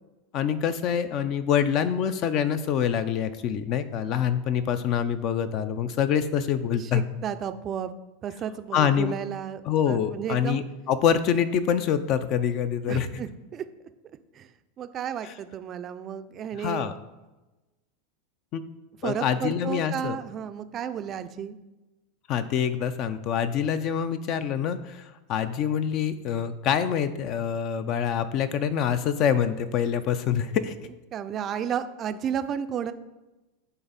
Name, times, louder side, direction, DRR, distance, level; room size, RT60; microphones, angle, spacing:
voice 1, 0.3-7.0 8.7-9.1 9.7-13.2 15.2-15.3 16.6-16.9 18.5-18.6 19.0-20.2 22.3-30.7, left 8 dB, 45° left, 12 dB, 0.4 m, -26 dB
voice 2, 6.8-7.9 8.2-9.6 9.9-10.6 12.9-13.7 14.3-14.5 14.8-16.9 19.0-21.6 31.1-32.9, right 8 dB, 30° right, 11 dB, 0.4 m, -32 dB
9.1 x 3.4 x 4.1 m, 1.1 s
supercardioid pair, 140°, 0 cm